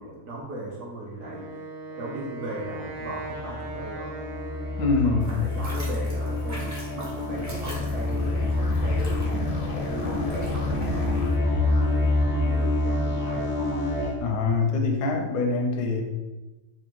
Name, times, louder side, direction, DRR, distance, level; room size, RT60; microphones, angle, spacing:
voice 1, 0.0-1.5 1.9-4.1 4.8-11.1 11.4-13.5, right 1 dB, 60° right, -4 dB, 0.9 m, -38 dB
Wind instrument woodwind instrument, 1.2-5.4, right 2 dB, 90° right, 1.2 m, -38 dB
sound 1, 2.7-14.2, left 2 dB, 65° left, 0.6 m, -27 dB
voice 2, 4.8-5.4 14.2-16.0, left 4 dB, 85° left, 2 dB, 1.2 m, -24 dB
sound 2, 5.2-11.3, equal, 25° right, 0.3 m, -44 dB
4.2 x 2.4 x 3.0 m, 1.1 s
omnidirectional pair, 1.7 m